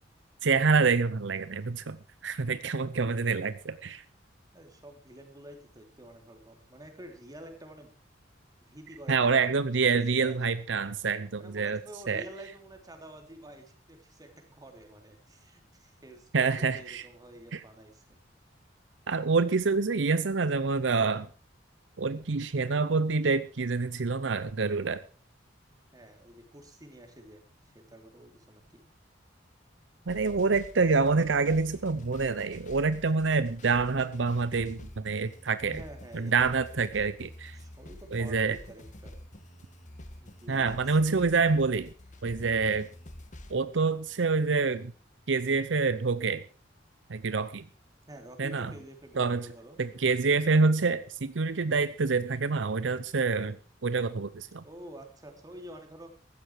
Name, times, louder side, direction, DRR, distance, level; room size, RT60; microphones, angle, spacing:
voice 1, 0.4-4.0 9.1-11.8 12.1-12.2 16.3-17.0 17.5-17.6 19.1-21.3 22.0-25.0 30.1-35.8 36.1-37.6 38.1-38.6 40.5-41.9 42.2-42.9 43.5-44.9 45.3-46.4 47.1-47.6 48.4-48.7 49.2-49.5 49.8-53.6 53.8-54.6, right 4 dB, 75° right, 14 dB, 0.7 m, -27 dB
voice 2, 4.5-7.9 8.7-9.2 10.1-10.4 11.3-18.2 25.7-27.5 27.7-28.8 35.6-36.7 37.5-39.2 40.2-41.1 48.1-49.8 54.6-56.1, right 1 dB, 20° right, 4 dB, 3.3 m, -49 dB
sound 1, 30.1-43.6, left 1 dB, 40° left, 1.8 m, -48 dB
15.5 x 13.0 x 4.7 m, 0.36 s
head